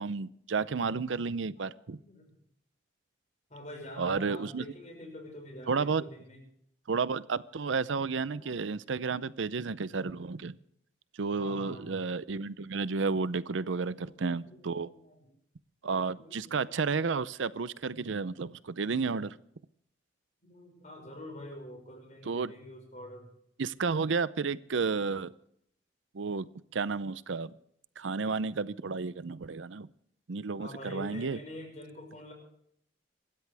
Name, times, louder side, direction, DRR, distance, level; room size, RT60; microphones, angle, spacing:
voice 1, 0.0-2.0 4.0-4.7 5.7-6.0 6.9-10.6 11.2-14.9 15.8-19.4 22.2-22.5 23.6-25.3 26.1-26.5 26.7-27.5 28.0-29.9 30.3-31.4, right 4 dB, 85° right, 17 dB, 0.6 m, -32 dB
voice 2, 2.0-2.3 3.5-6.4 8.3-8.6 11.4-11.9 13.6-15.2 16.1-16.8 20.4-23.3 30.6-32.3, left 1 dB, 40° left, 3 dB, 6.0 m, -46 dB
26.5 x 13.0 x 3.4 m, 0.69 s
head